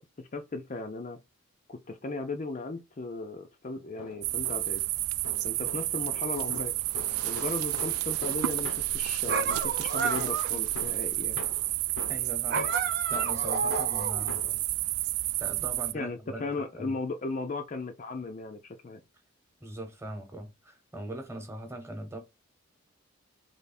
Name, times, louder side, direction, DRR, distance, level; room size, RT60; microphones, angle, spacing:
voice 1, 0.2-1.2 1.7-4.8 5.4-6.8 7.2-11.4 15.9-19.0, left 3 dB, 35° left, 0.4 m, -36 dB
sound 1, 3.8-4.9 5.2-9.7 10.1-14.7, left 4 dB, 90° left, 0.7 m, -45 dB
sound 2, 4.2-15.9, right 16 dB, 90° right, 0.3 m, -30 dB
sound 3, 9.3-10.6 12.5-14.3, right 5 dB, 50° right, 0.6 m, -31 dB
voice 2, 12.1-14.6 15.4-16.5 16.7-16.9 19.6-22.2, right 1 dB, 10° right, 1.0 m, -41 dB
3.4 x 3.3 x 4.0 m
head